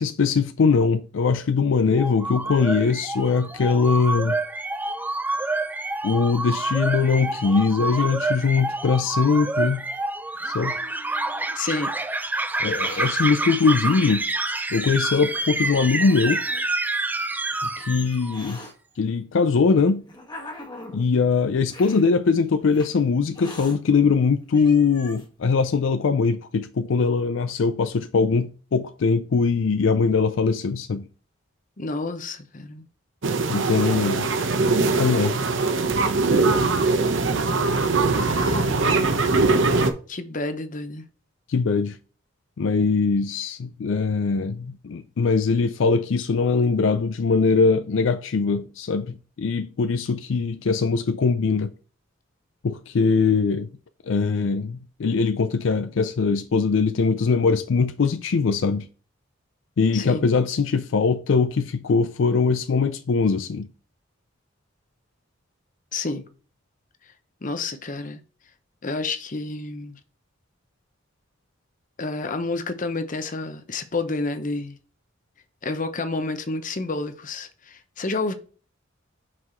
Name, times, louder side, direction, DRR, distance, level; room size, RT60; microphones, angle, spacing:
voice 1, 0.0-4.4 6.0-9.8 10.5-10.8 12.6-14.3 14.7-16.4 17.6-18.6 19.0-20.0 20.9-31.1 33.5-34.3 35.0-35.4 41.5-42.0 42.6-51.7 52.6-53.7 54.1-58.9 59.8-63.7, left 4 dB, 70° left, 0.4 m, -21 dB
sound 1, 1.9-18.5, right 2 dB, 10° right, 0.3 m, -28 dB
Hiss, 9.9-11.6 12.5-13.1 14.1-14.2 15.0-15.1 15.6-16.7 17.5-18.7 19.6-21.1 21.7-22.0 22.7-22.9 23.3-23.8 24.2-24.3 24.5-25.3, left 1 dB, 20° left, 1.3 m, -42 dB
voice 2, 11.5-11.9 31.8-32.9 38.1-39.4 40.1-41.1 59.9-60.3 65.9-66.3 67.4-68.2 68.8-70.0 72.0-74.8 75.6-78.3, left 3 dB, 40° left, 0.8 m, -30 dB
sound 2, 33.2-39.9, right 3 dB, 70° right, 0.8 m, -21 dB
5.9 x 4.7 x 4.4 m
head